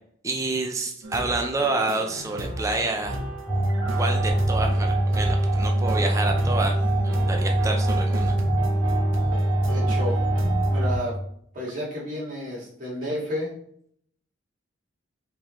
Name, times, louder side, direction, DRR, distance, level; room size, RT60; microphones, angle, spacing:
voice 1, 0.2-3.2 4.0-6.8 7.0-8.4, right 2 dB, 15° right, 2 dB, 0.4 m, -28 dB
sound 1, 1.0-10.9, right 1 dB, 85° right, 0.8 m, -35 dB
sound 2, 3.5-11.0, right 1 dB, 10° left, 1.0 m, -23 dB
voice 2, 9.6-10.3 10.7-11.2 11.5-13.5, left 1 dB, 40° right, -5 dB, 1.9 m, -31 dB
4.7 x 3.6 x 3.1 m, 0.65 s
head